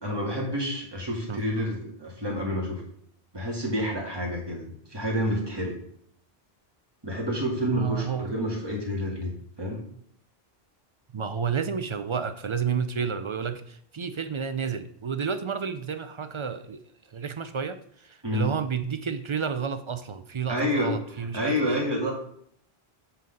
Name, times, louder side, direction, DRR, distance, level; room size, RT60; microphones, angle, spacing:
voice 1, 0.0-2.8 3.3-5.8 7.0-9.3 9.6-9.8 18.2-18.5 20.5-22.1, equal, 25° right, -2 dB, 2.0 m, -29 dB
voice 2, 7.5-8.3 11.1-16.8 17.1-21.8, right 6 dB, 50° right, 10 dB, 0.3 m, -31 dB
8.1 x 3.9 x 5.2 m, 0.66 s
omnidirectional pair, 1.0 m